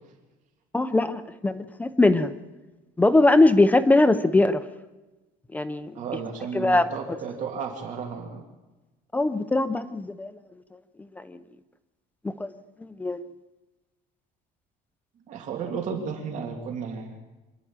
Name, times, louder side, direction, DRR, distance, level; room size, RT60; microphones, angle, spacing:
voice 1, 0.7-2.3 3.0-4.6 5.5-5.9 6.5-6.9 9.1-10.3 11.2-11.4 12.2-12.5 13.0-13.2, left 2 dB, 10° left, 11 dB, 0.6 m, -21 dB
voice 2, 5.9-8.4 15.3-17.1, right 6 dB, 45° right, 2 dB, 2.5 m, -33 dB
26.0 x 11.5 x 8.8 m, 1.1 s
cardioid pair, 170°, 17 cm